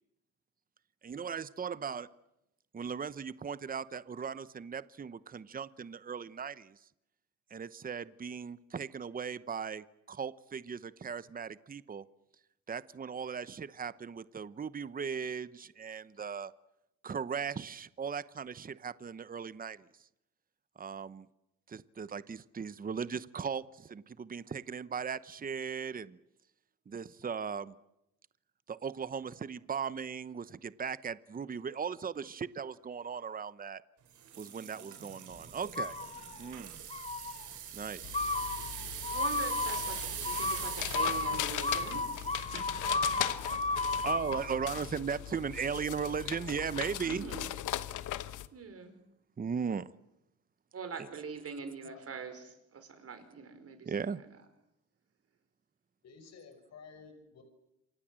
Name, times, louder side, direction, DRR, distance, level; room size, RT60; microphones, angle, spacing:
voice 1, 1.0-2.1 2.7-6.8 7.5-12.0 12.7-16.5 17.0-19.9 20.8-21.3 21.7-26.2 26.9-27.7 28.7-33.8 34.4-36.0 36.4-36.8 37.7-38.3 43.8-47.2 49.4-49.9 53.8-54.2, right 6 dB, 30° right, 0.9 m, -38 dB
sound 1, 34.1-44.0 44.6-44.8 45.3-45.4, right 9 dB, 75° right, 4.8 m, -43 dB
sound 2, 35.8-36.5 36.9-37.4 38.1-44.4, left 3 dB, 20° left, 2.9 m, -34 dB
sound 3, 38.0-48.5, left 13 dB, 80° left, 1.2 m, -39 dB
voice 2, 39.1-42.2 42.5-43.1 44.2-44.3 47.0-47.5 48.5-48.9 50.7-54.3, right 5 dB, 50° right, 5.1 m, -44 dB
voice 3, 51.6-52.0 56.0-57.4, left 5 dB, 60° left, 5.7 m, -53 dB
28.5 x 24.5 x 7.7 m
cardioid pair, 90°, 30 cm